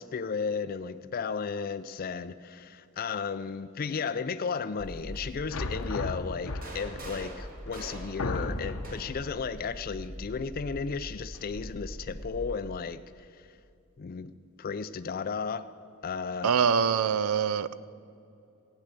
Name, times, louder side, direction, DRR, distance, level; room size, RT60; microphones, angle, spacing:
voice 1, 0.0-13.5 14.0-14.3 14.6-15.7 16.0-16.5, left 5 dB, 40° left, 0.4 m, -34 dB
sound 1, 4.8-12.6, equal, ahead, 0.7 m, -43 dB
sound 2, 5.5-7.0 7.7-7.8 8.2-9.0, left 3 dB, 85° left, 0.9 m, -34 dB
sound 3, 6.4-9.3 10.4-11.5, right 1 dB, 40° right, 2.0 m, -45 dB
voice 2, 16.4-17.8, right 6 dB, 80° right, 0.5 m, -24 dB
15.5 x 9.1 x 6.6 m
head